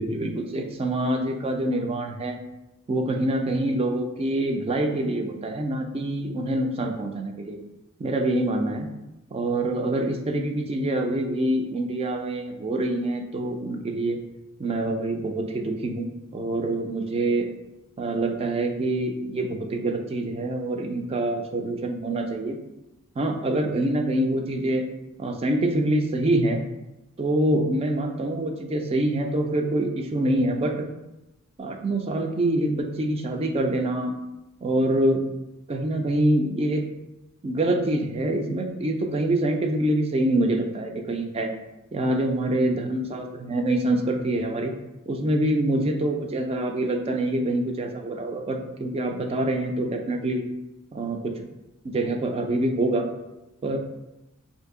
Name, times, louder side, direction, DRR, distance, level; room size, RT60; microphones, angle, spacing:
voice 1, 0.0-2.4 2.9-7.6 8.0-8.9 9.3-14.2 14.6-17.5 18.0-22.6 23.2-24.8 25.2-26.6 27.2-30.7 31.6-34.1 34.6-35.3 35.7-36.8 37.4-41.5 41.9-44.7 45.1-50.4 50.9-51.3 51.8-53.1 53.6-53.8, right 1 dB, 25° right, 3 dB, 0.3 m, -25 dB
2.7 x 2.6 x 3.6 m, 0.96 s
head